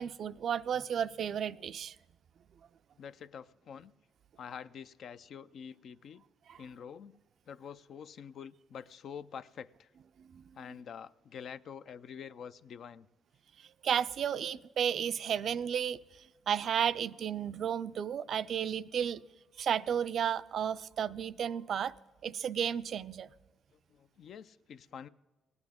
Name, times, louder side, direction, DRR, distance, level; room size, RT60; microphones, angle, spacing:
voice 1, 0.0-2.0 6.5-6.6 10.3-10.4 13.8-16.0 16.5-19.2 19.6-21.9 22.2-23.3, right 8 dB, 60° right, 15 dB, 0.3 m, -33 dB
voice 2, 3.0-3.9 4.4-6.2 6.6-7.2 7.5-9.9 10.5-13.1 16.6-16.7 23.7-25.1, left 7 dB, 65° left, 13 dB, 0.4 m, -47 dB
17.5 x 9.6 x 3.6 m, 1.2 s
cardioid pair, 90°, 0 cm